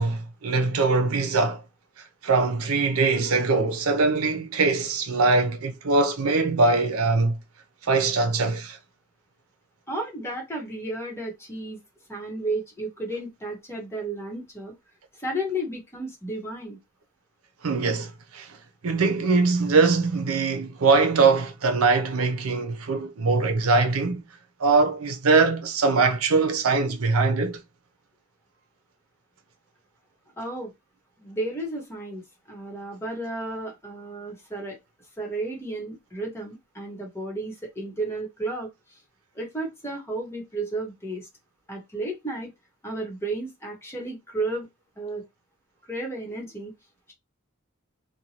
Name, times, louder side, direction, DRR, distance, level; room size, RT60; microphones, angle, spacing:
voice 1, 0.0-1.6 2.2-7.4 7.8-8.8 17.6-18.6 18.8-24.2 24.6-27.6, right 3 dB, 80° right, 0.6 m, -22 dB
voice 2, 9.9-11.8 12.1-14.7 15.2-16.8 30.4-30.7 31.2-34.8 35.2-38.7 39.3-41.3 41.7-42.5 42.8-44.7 45.0-45.2 45.9-46.7, right 2 dB, 10° left, 1.0 m, -33 dB
2.6 x 2.2 x 2.8 m
head